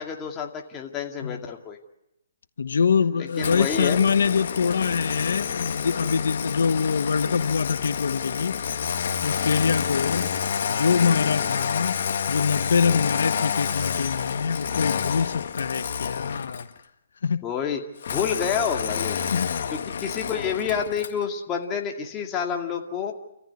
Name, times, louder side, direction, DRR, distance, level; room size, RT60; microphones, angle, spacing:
voice 1, 0.0-1.8 3.2-4.0 17.4-19.2 19.7-23.1, left 7 dB, 20° left, 2.3 m, -29 dB
voice 2, 2.6-8.6 9.2-10.3 10.7-12.0 12.3-16.7 17.2-17.4 19.3-19.5, left 6 dB, 80° left, 1.1 m, -24 dB
Engine starting, 3.4-16.8 18.0-21.2, left 7 dB, 60° left, 1.8 m, -29 dB
29.0 x 15.0 x 9.7 m
hypercardioid pair, 160°, 0 cm